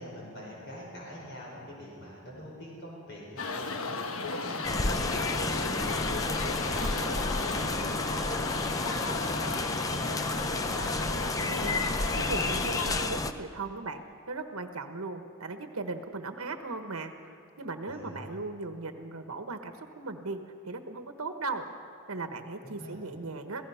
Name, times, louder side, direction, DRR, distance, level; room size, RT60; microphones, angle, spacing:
voice 1, 0.0-5.4 5.8-7.1 7.4-10.8 17.9-18.3 22.6-23.0, equal, 50° left, -4 dB, 5.4 m, -44 dB
sound 1, 3.4-13.1, left 3 dB, 70° left, 1.2 m, -34 dB
sound 2, 4.6-13.3, left 2 dB, 15° left, 0.5 m, -31 dB
voice 2, 11.4-11.8 12.1-17.1 17.6-20.4 20.6-21.7 22.1-23.7, right 3 dB, 80° right, 7 dB, 1.3 m, -37 dB
26.5 x 17.0 x 5.7 m, 2.6 s
head